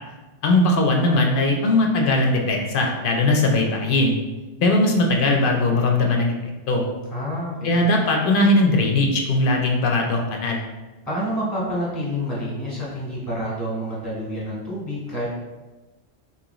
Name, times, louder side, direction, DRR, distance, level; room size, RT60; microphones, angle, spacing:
voice 1, 0.4-4.2 4.6-6.3 6.7-6.8 7.6-10.6, left 2 dB, 60° left, 1 dB, 0.6 m, -19 dB
voice 2, 7.1-7.8 11.0-15.3, equal, ahead, -6 dB, 1.0 m, -28 dB
3.9 x 2.9 x 3.0 m, 1.2 s
omnidirectional pair, 1.2 m